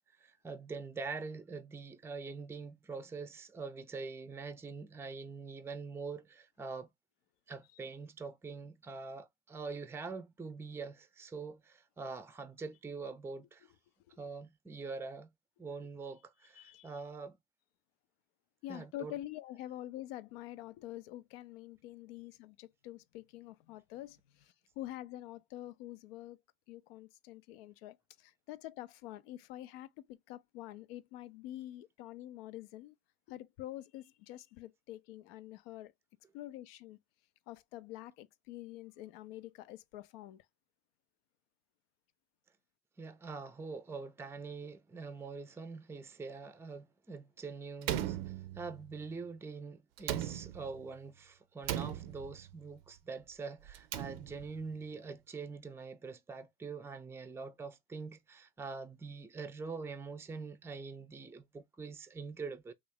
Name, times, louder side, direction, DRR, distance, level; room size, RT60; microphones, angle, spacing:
voice 1, 0.0-6.9 7.5-13.7 14.2-15.3 15.6-17.4 18.7-19.1 43.0-62.7, right 4 dB, 10° right, 0.4 m, -44 dB
voice 2, 13.3-13.8 14.1-14.2 15.8-15.9 16.4-17.0 18.6-26.4 26.7-32.9 33.3-35.9 36.3-37.0 37.5-40.5 44.6-44.7, left 14 dB, 85° left, 0.5 m, -47 dB
Slam, 47.8-49.0 50.0-50.9 51.6-52.5 53.7-54.6, right 12 dB, 85° right, 0.5 m, -38 dB
3.1 x 2.4 x 3.4 m
supercardioid pair, 85°, 29 cm